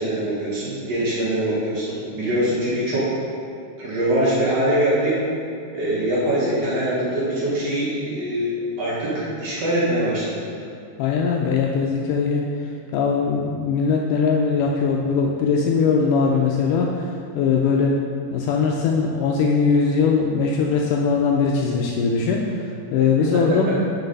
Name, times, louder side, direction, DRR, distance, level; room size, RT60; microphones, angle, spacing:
voice 1, 0.0-3.1 3.8-5.2 5.7-8.5 8.8-10.3, right 1 dB, 55° right, -8 dB, 2.3 m, -23 dB
voice 2, 11.0-18.0 18.3-23.9, left 5 dB, 80° left, 0 dB, 2.0 m, -21 dB
5.9 x 4.8 x 5.3 m, 2.5 s
omnidirectional pair, 3.9 m